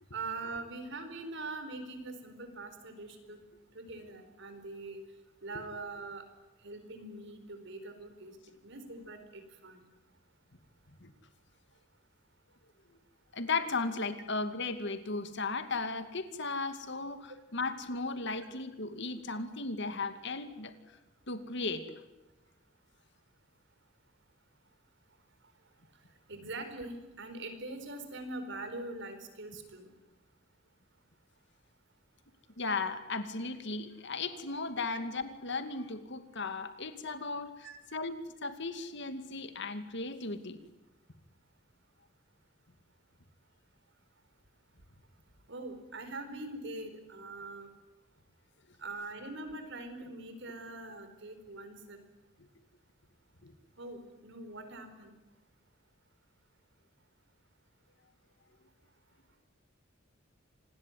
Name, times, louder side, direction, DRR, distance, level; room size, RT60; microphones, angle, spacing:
voice 1, 0.1-3.4 3.7-5.0 5.4-6.3 6.6-8.4 8.6-9.8 26.3-29.9 37.6-37.8 45.5-47.7 48.8-52.0 53.8-55.1, right 2 dB, 65° right, 8 dB, 4.5 m, -43 dB
voice 2, 13.3-20.7 21.3-21.8 32.6-40.6 53.4-53.5, left 3 dB, 65° left, 10 dB, 2.4 m, -36 dB
27.0 x 20.0 x 9.4 m, 1.0 s
head